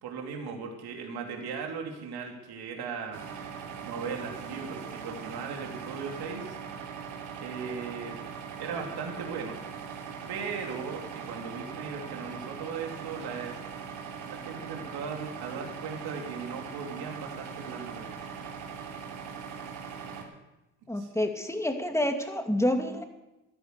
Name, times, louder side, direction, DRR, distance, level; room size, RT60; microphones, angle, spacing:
voice 1, 0.0-3.2 3.8-6.6 7.4-8.2 8.6-9.6 10.3-13.6 14.2-18.2 20.9-21.1, right 5 dB, 55° right, 2 dB, 3.0 m, -38 dB
sound 1, 3.1-20.2, right 6 dB, 75° right, 3.0 m, -41 dB
voice 2, 20.9-23.0, left 1 dB, 5° left, 5 dB, 2.4 m, -28 dB
13.5 x 13.5 x 6.7 m, 0.99 s
hypercardioid pair, 60°, 45 cm